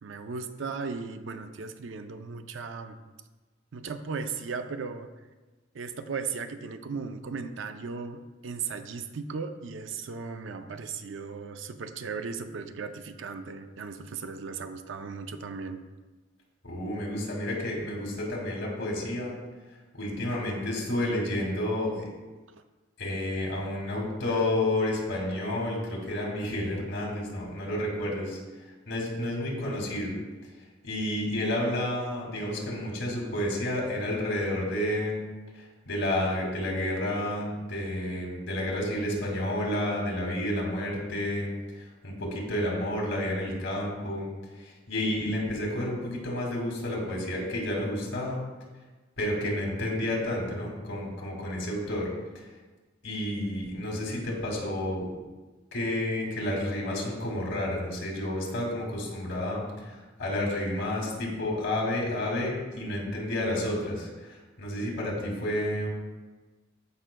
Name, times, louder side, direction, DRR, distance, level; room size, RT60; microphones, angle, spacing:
voice 1, 0.0-3.0 3.7-5.1 5.7-15.8 22.6-22.7, right 5 dB, 70° right, 8 dB, 0.5 m, -36 dB
voice 2, 16.6-19.4 19.9-22.1 23.0-28.4 28.9-30.2 30.8-35.2 35.5-44.3 44.6-48.4 49.2-52.1 52.3-52.5 53.0-55.1 55.7-65.9, left 1 dB, 65° left, -2 dB, 2.2 m, -30 dB
13.5 x 5.6 x 2.2 m, 1.2 s
head